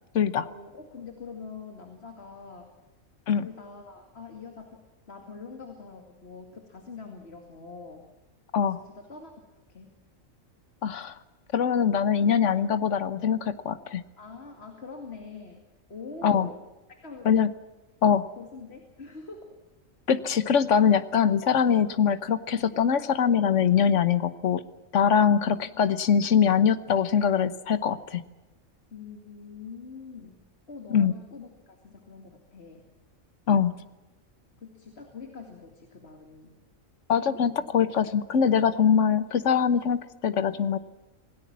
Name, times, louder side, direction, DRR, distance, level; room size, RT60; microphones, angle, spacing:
voice 1, 0.4-2.7 3.4-8.0 8.5-9.3 9.7-9.9 14.2-15.6 15.9-16.6 17.0-17.3 18.4-19.5 25.3-25.7 28.9-30.4 30.7-32.9 34.6-36.6 37.3-37.7, left 4 dB, 50° left, 4 dB, 2.6 m, -44 dB
voice 2, 10.8-11.1 11.5-14.0 16.2-16.5 17.2-17.5 18.0-18.3 20.1-24.6 24.9-28.2 30.9-31.1 33.5-33.7 37.1-40.8, left 7 dB, 65° left, 13 dB, 1.4 m, -23 dB
26.5 x 18.0 x 7.4 m, 1.1 s
omnidirectional pair, 1.4 m